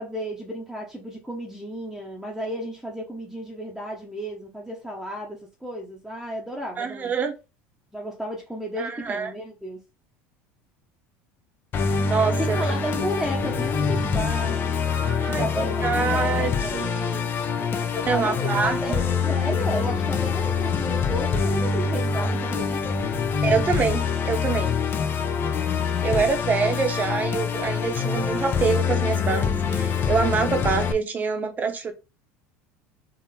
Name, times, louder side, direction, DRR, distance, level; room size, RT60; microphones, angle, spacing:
voice 1, 0.0-7.1 7.9-9.8 12.4-14.8 15.2-16.9 17.6-23.0, equal, ahead, 0.9 m, -33 dB
voice 2, 6.8-7.3 8.8-9.3 12.1-12.7 14.9-17.3 18.1-19.0 23.4-24.7 26.0-31.9, right 5 dB, 25° right, 0.9 m, -26 dB
Musical instrument, 11.7-30.9, left 5 dB, 35° left, 0.6 m, -25 dB
3.9 x 2.8 x 4.2 m
supercardioid pair, 125°, 6 cm